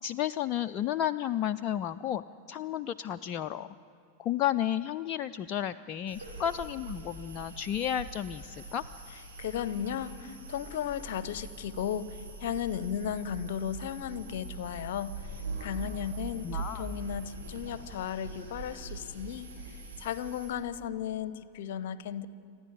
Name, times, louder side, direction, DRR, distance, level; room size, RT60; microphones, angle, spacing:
voice 1, 0.0-3.7 4.2-8.8 15.8-16.0 16.4-16.9, left 11 dB, 35° left, 9 dB, 0.4 m, -32 dB
sound 1, 6.1-20.5, right 3 dB, 70° right, 5.7 m, -43 dB
voice 2, 9.4-16.5 16.7-22.3, left 9 dB, 55° left, 17 dB, 0.8 m, -35 dB
28.0 x 10.5 x 9.3 m, 2.9 s
figure-of-eight pair, 90°, 0 cm